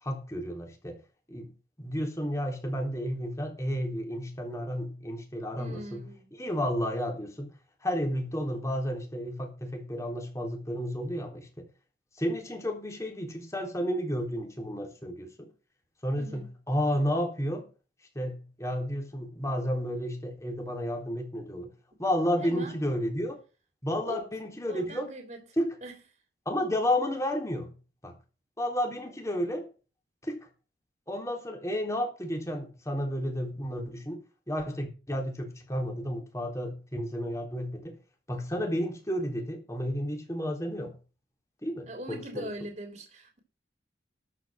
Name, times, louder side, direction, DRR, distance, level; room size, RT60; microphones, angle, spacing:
voice 1, 0.0-1.0 1.3-1.5 1.8-6.1 6.4-7.5 7.8-11.7 12.2-15.5 16.0-17.7 18.2-21.7 22.0-23.4 23.8-25.1 25.6-25.8 26.5-27.7 28.0-28.1 28.6-29.7 30.2-30.5 31.1-34.2 34.5-37.9 38.3-41.0 41.6-42.5, equal, 15° left, 3.6 m, -32 dB
voice 2, 5.6-6.3 16.2-16.5 22.4-22.8 24.1-24.2 24.7-25.4 25.8-25.9 41.9-43.4, right 1 dB, 40° right, 3.4 m, -41 dB
13.5 x 6.2 x 7.5 m
head